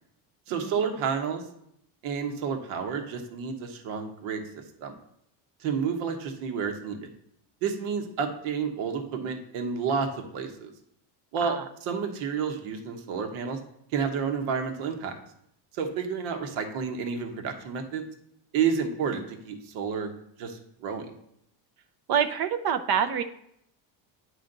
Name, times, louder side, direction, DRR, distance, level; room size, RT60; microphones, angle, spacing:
voice 1, 0.5-1.4 2.0-4.4 4.8-5.0 5.6-7.1 7.6-10.7 11.3-13.6 13.9-15.1 15.7-18.0 18.5-20.1 20.4-21.1, right 6 dB, 85° right, 5 dB, 1.3 m, -30 dB
voice 2, 22.1-23.2, right 8 dB, 50° right, 9 dB, 0.6 m, -26 dB
9.4 x 5.0 x 3.9 m, 0.74 s
cardioid pair, 120°, 48 cm